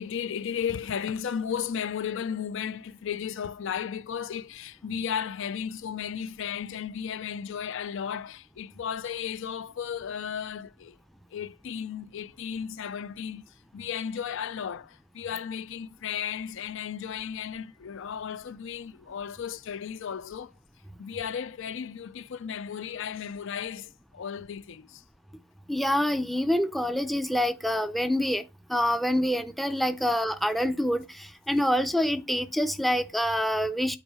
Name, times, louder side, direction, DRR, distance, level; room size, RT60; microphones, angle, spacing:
voice 1, 0.0-11.0 11.3-13.4 13.7-20.5 21.0-25.0, left 8 dB, 65° left, 0.4 m, -34 dB
voice 2, 25.7-28.4 28.7-34.0, equal, ahead, 0.5 m, -26 dB
9.1 x 4.6 x 4.7 m
head